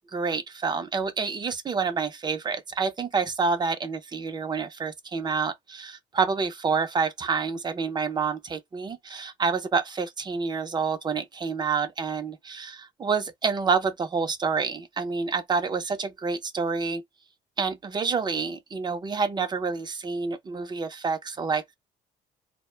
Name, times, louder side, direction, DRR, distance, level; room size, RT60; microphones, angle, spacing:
voice 1, 0.1-17.0 17.6-21.7, right 5 dB, 25° right, 0.5 m, -28 dB
2.1 x 2.0 x 3.1 m
cardioid pair, 110°, 17 cm